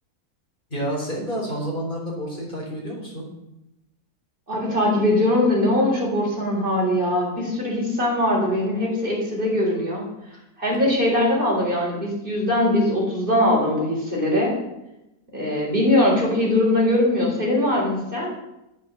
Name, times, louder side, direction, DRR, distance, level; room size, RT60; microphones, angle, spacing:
voice 1, 0.7-3.3, equal, 30° left, -2 dB, 4.0 m, -29 dB
voice 2, 4.5-10.0 10.6-14.6 15.3-18.3, left 1 dB, 35° right, -3 dB, 4.1 m, -21 dB
8.9 x 8.8 x 6.9 m, 0.90 s
omnidirectional pair, 1.6 m